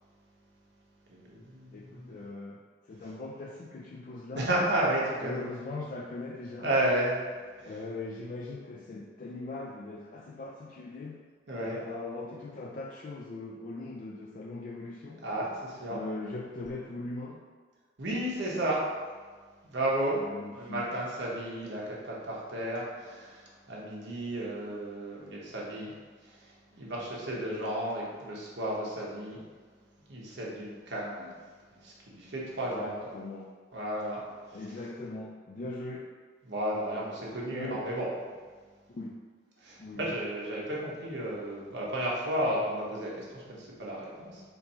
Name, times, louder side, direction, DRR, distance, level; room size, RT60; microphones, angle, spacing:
voice 1, 1.1-2.3 4.3-5.4 6.5-7.3 7.6-7.7 11.5-11.8 15.2-16.0 18.0-18.9 19.6-20.2 20.5-29.4 30.1-31.3 31.7-33.1 33.7-34.6 36.5-38.1 39.6-44.4, right 1 dB, 70° right, -5 dB, 1.1 m, -33 dB
voice 2, 1.7-4.5 5.2-6.7 7.6-11.2 11.6-15.2 15.9-17.4 20.2-20.8 32.7-33.5 34.5-36.1 37.5-37.9 38.9-39.2 39.8-40.1, left 2 dB, 45° left, -1 dB, 0.3 m, -40 dB
4.3 x 2.6 x 4.3 m, 1.5 s
head